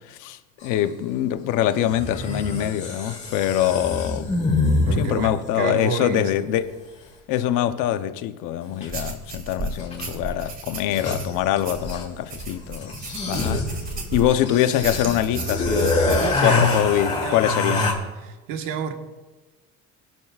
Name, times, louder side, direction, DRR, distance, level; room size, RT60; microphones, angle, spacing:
voice 1, 0.1-4.3 5.0-6.7 7.3-13.0 13.3-13.7 14.1-17.9, left 11 dB, 70° left, 0.9 m, -24 dB
sound 1, 0.6-0.7 1.9-5.4 8.8-8.9 9.8-10.2 10.5-10.6 10.8-12.2 12.8-17.9, left 2 dB, 20° left, 2.3 m, -25 dB
voice 2, 4.9-6.5 16.2-16.8 17.2-17.5 18.2-18.9, right 6 dB, 80° right, 1.6 m, -29 dB
sound 2, 8.9-14.4 14.8-16.3, right 2 dB, 25° right, 2.0 m, -34 dB
22.5 x 12.0 x 2.5 m
cardioid pair, 165°, 32 cm